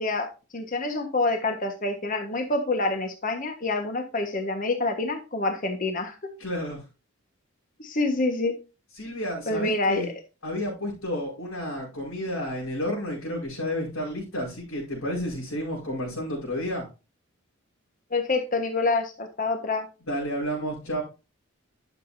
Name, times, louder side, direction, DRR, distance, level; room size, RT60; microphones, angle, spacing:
voice 1, 0.0-6.3 7.8-8.5 9.5-10.1 18.1-19.9, left 2 dB, 40° left, 5 dB, 1.4 m, -27 dB
voice 2, 6.4-6.8 8.9-10.1 10.4-16.8 20.1-21.0, equal, 85° left, -6 dB, 5.2 m, -31 dB
11.5 x 7.0 x 2.7 m, 0.30 s
head